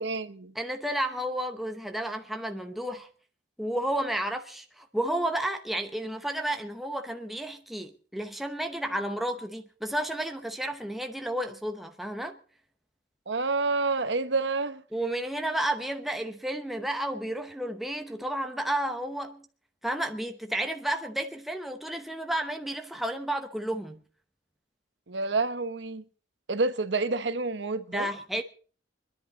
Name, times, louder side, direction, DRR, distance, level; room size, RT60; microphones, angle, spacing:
voice 1, 0.0-0.5 13.3-14.8 25.1-26.0 26.5-28.1, right 3 dB, 65° right, 1.0 m, -28 dB
voice 2, 0.5-3.1 3.6-12.4 14.9-19.5 19.8-24.0 27.9-28.4, right 1 dB, ahead, 0.8 m, -32 dB
25.5 x 11.0 x 4.0 m
head